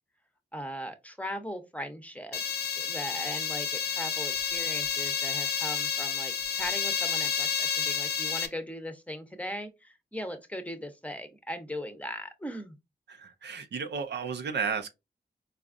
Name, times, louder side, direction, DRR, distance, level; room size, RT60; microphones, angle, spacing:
voice 1, 0.5-2.4 2.8-12.8, equal, 10° left, 0.7 m, -39 dB
sound 1, 2.3-8.5, left 7 dB, 65° left, 0.5 m, -30 dB
voice 2, 13.1-14.9, right 5 dB, 75° right, 0.5 m, -33 dB
4.0 x 2.4 x 2.4 m
cardioid pair, 50°, 18 cm